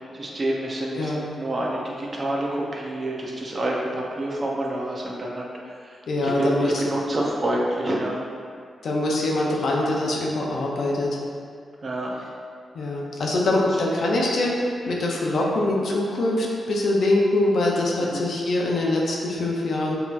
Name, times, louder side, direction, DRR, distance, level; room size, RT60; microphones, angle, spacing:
voice 1, 0.1-8.2 11.8-12.1 18.1-18.2, right 1 dB, 40° right, -3 dB, 0.7 m, -28 dB
voice 2, 0.9-1.3 6.1-6.8 8.8-11.2 12.7-20.0, left 2 dB, 70° left, -3 dB, 0.6 m, -23 dB
5.3 x 2.9 x 2.5 m, 2.2 s
cardioid pair, 85°, 0 cm